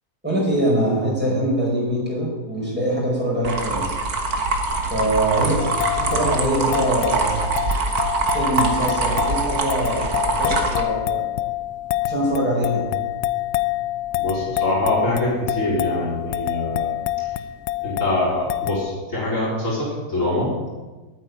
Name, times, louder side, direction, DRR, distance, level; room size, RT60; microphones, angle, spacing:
voice 1, 0.2-4.0 4.9-5.7 5.9-7.3 8.3-11.2 12.0-12.9, right 1 dB, 5° right, -6 dB, 5.7 m, -23 dB
sound 1, 3.4-10.8, right 3 dB, 65° right, 2.0 m, -24 dB
sound 2, 5.6-18.9, left 15 dB, 80° left, 1.1 m, -27 dB
voice 2, 14.1-16.9 17.8-20.7, left 1 dB, 50° left, -6 dB, 4.8 m, -24 dB
9.3 x 8.7 x 9.6 m, 1.2 s
omnidirectional pair, 1.7 m